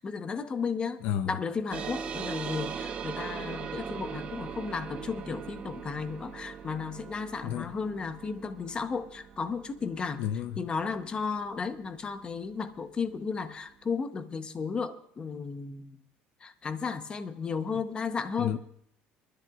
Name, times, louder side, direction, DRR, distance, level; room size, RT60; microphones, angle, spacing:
voice 1, 0.0-1.0 1.3-10.2 10.6-16.0 16.4-18.6, left 5 dB, 25° left, 0.9 m, -34 dB
voice 2, 1.0-1.4 7.4-7.7 10.2-10.7 18.4-18.6, left 10 dB, 65° left, 0.6 m, -31 dB
sound 1, 1.7-12.6, right 6 dB, 35° right, 1.0 m, -40 dB
23.5 x 13.0 x 2.4 m
cardioid pair, 140°, 4 cm